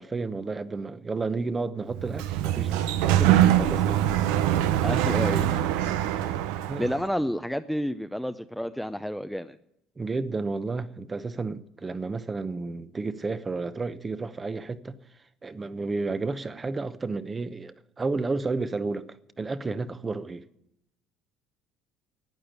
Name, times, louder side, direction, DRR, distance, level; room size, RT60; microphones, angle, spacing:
voice 1, 0.0-4.0 6.7-6.9 10.0-15.0 15.4-20.4, right 3 dB, 25° right, 0.9 m, -32 dB
Sliding door, 1.9-7.0, right 12 dB, 85° right, 0.8 m, -23 dB
voice 2, 4.8-5.5 6.8-9.6, equal, ahead, 0.6 m, -30 dB
12.0 x 8.8 x 9.6 m
supercardioid pair, 90°, 0 cm